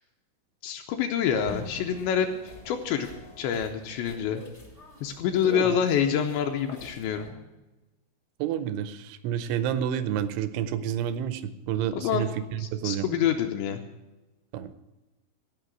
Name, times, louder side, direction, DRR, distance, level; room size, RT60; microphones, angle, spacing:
voice 1, 0.6-2.3 2.7-3.1 3.4-4.4 5.0-7.3 11.9-12.3 12.6-13.8, left 8 dB, 80° left, 4 dB, 2.7 m, -27 dB
sound 1, 1.3-7.3, left 3 dB, 60° left, 0.6 m, -45 dB
voice 2, 5.4-5.8 8.4-13.1 14.5-14.7, right 9 dB, 85° right, 12 dB, 2.9 m, -29 dB
16.5 x 5.6 x 8.1 m, 1.1 s
omnidirectional pair, 5.6 m